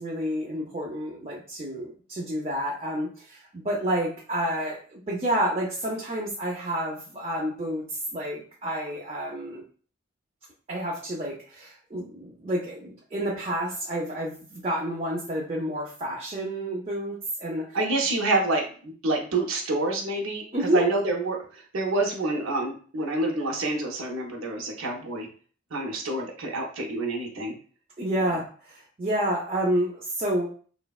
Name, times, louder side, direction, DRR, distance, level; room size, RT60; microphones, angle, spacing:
voice 1, 0.0-9.6 10.7-17.8 20.5-20.9 28.0-30.5, right 1 dB, 30° right, -4 dB, 0.5 m, -29 dB
voice 2, 17.7-25.3 25.7-27.5, right 2 dB, 85° right, -1 dB, 0.6 m, -27 dB
3.2 x 2.1 x 2.3 m, 0.42 s
head